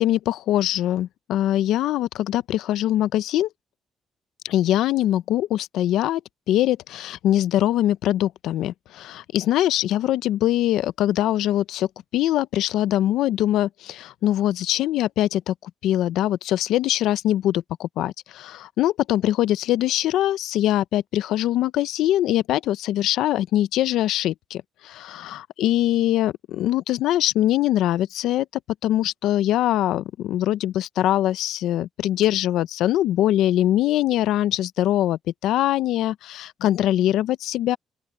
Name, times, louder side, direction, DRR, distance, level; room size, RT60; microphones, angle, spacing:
voice 1, 0.0-3.5 4.4-6.2 6.5-11.9 12.1-15.5 15.8-28.5 28.8-37.8, left 13 dB, 85° left, 0.5 m, -22 dB
open air
cardioid pair, 90°, 0 cm